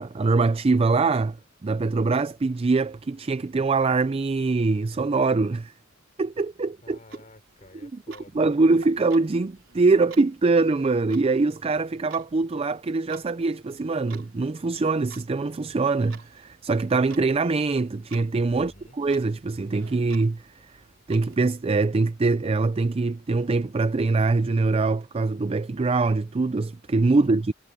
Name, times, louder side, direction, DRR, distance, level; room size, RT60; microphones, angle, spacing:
voice 1, 0.0-1.4 1.6-5.7 6.2-7.0 7.8-8.0 8.3-20.4 21.1-27.5, right 3 dB, 30° right, 0.4 m, -23 dB
voice 2, 6.8-8.4 18.5-19.0 27.2-27.5, left 1 dB, 40° left, 4.0 m, -51 dB
Clock, 6.9-21.4, right 5 dB, 85° right, 3.8 m, -52 dB
head